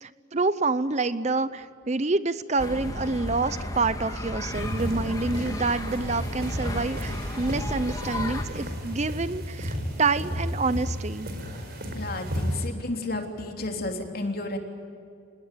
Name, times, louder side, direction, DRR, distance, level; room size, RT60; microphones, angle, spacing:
voice 1, 0.0-11.3, right 3 dB, 35° right, 14 dB, 0.6 m, -27 dB
sound 1, 2.6-8.4, left 1 dB, 15° left, 2.1 m, -33 dB
sound 2, 4.5-12.7, equal, 50° right, 4.7 m, -33 dB
voice 2, 11.9-14.6, left 2 dB, 45° left, 3 dB, 3.3 m, -32 dB
27.0 x 20.5 x 9.2 m, 2.4 s
head